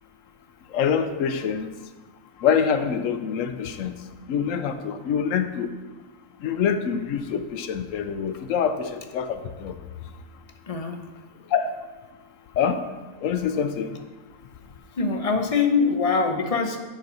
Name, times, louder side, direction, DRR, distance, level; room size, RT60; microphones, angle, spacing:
voice 1, 0.7-1.7 2.4-3.9 4.3-5.7 6.4-9.8 11.5-11.7 12.6-12.9 13.2-14.0, left 7 dB, 75° left, 9 dB, 1.0 m, -25 dB
voice 2, 10.7-11.0 14.9-16.8, left 5 dB, 40° left, 5 dB, 0.6 m, -23 dB
12.5 x 4.2 x 4.0 m, 1.2 s
omnidirectional pair, 1.4 m